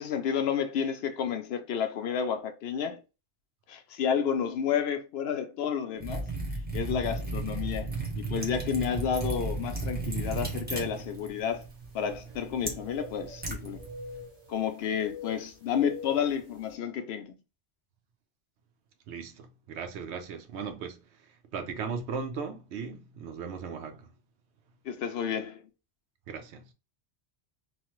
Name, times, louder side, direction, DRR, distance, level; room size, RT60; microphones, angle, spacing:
voice 1, 0.0-3.0 3.7-6.3 6.7-11.6 11.9-13.8 14.5-17.3 24.9-25.6, left 7 dB, 75° left, 0.8 m, -31 dB
Liquid, 6.0-14.3, right 3 dB, 10° right, 0.7 m, -35 dB
sound 1, 9.5-9.6 10.3-10.4 12.2-13.5 13.8-14.6 15.0-16.4, left 5 dB, 30° right, 1.0 m, -44 dB
voice 2, 19.1-24.1 26.3-26.7, right 5 dB, 85° right, 0.9 m, -38 dB
3.0 x 2.1 x 2.9 m
omnidirectional pair, 1.1 m